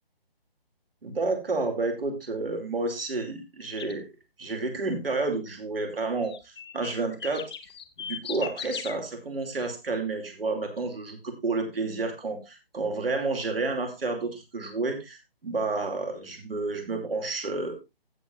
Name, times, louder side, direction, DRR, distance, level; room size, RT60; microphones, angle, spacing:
voice 1, 1.0-4.1 4.4-7.5 8.1-17.8, right 3 dB, 65° right, 4 dB, 2.9 m, -30 dB
sound 1, 3.8-4.0 6.2-9.0, left 8 dB, 25° left, 0.9 m, -38 dB
15.5 x 7.5 x 2.6 m, 0.24 s
figure-of-eight pair, 155°, 31 cm